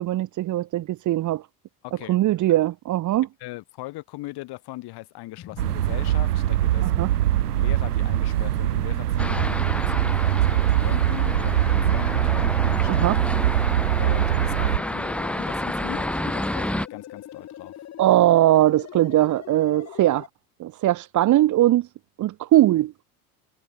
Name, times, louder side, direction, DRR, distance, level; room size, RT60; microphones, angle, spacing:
voice 1, 0.0-1.4 2.1-3.3 6.8-7.1 12.9-13.2 18.0-20.3 20.6-21.9 22.2-23.0, right 14 dB, 40° right, 1.0 m, -20 dB
voice 2, 1.8-2.2 3.4-7.1 7.5-13.0 13.4-13.5 14.0-17.7, left 19 dB, 55° left, 7.2 m, -39 dB
sound 1, 5.4-20.3, left 11 dB, 35° left, 1.4 m, -42 dB
sound 2, 5.6-14.8, right 14 dB, 85° right, 1.1 m, -22 dB
sound 3, 9.2-16.9, left 1 dB, 5° left, 1.4 m, -29 dB
hypercardioid pair, 85°, 45 cm